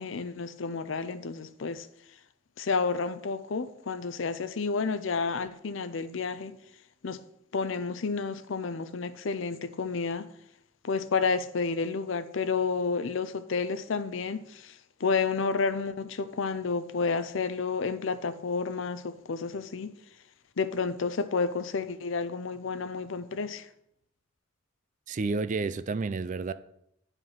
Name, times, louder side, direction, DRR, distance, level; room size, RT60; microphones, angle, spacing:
voice 1, 0.0-1.9 2.6-6.6 7.0-7.2 7.5-10.3 10.8-19.9 20.6-23.7, left 4 dB, 70° left, 0.6 m, -30 dB
voice 2, 25.1-26.5, right 3 dB, 40° right, 0.4 m, -30 dB
9.3 x 5.3 x 5.7 m
head